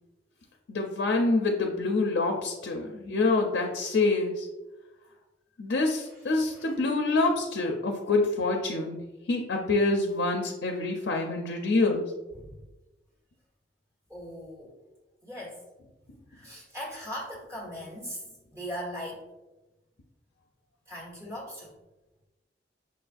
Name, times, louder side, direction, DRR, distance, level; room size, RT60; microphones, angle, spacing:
voice 1, 0.7-4.5 5.6-9.0 9.3-12.1, left 3 dB, 70° left, 3 dB, 0.4 m, -26 dB
voice 2, 6.3-6.7 12.4-12.6 14.1-14.7 15.2-15.6 16.3-18.2 18.5-19.3 20.9-21.7, equal, 15° right, -5 dB, 1.2 m, -39 dB
5.7 x 2.3 x 2.5 m, 1.0 s
head